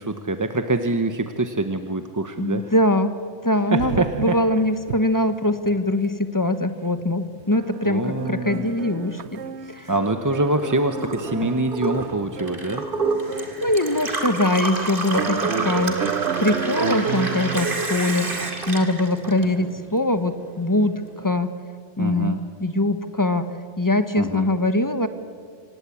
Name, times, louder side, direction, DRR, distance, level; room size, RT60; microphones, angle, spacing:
voice 1, 0.0-2.7 3.7-4.4 7.8-8.7 9.9-12.8 15.6-16.0 22.0-22.4 24.2-24.5, right 2 dB, 20° right, 8 dB, 0.7 m, -25 dB
voice 2, 2.4-3.1 3.4-9.4 9.7-9.9 13.3-16.0 16.4-21.5 22.0-25.1, left 1 dB, 15° left, 10 dB, 1.1 m, -22 dB
sound 1, 3.8-4.5 4.8-5.0 5.3-5.4 5.6-6.0 7.0-7.1 7.4-13.8 14.4-14.5 15.1-18.0, right 7 dB, 70° right, 1.1 m, -31 dB
Gurgling / Water tap faucet / Sink (filling or washing), 10.4-20.0 20.3-21.2, right 3 dB, 50° right, 2.6 m, -29 dB
26.0 x 18.0 x 8.4 m, 2.1 s
omnidirectional pair, 1.2 m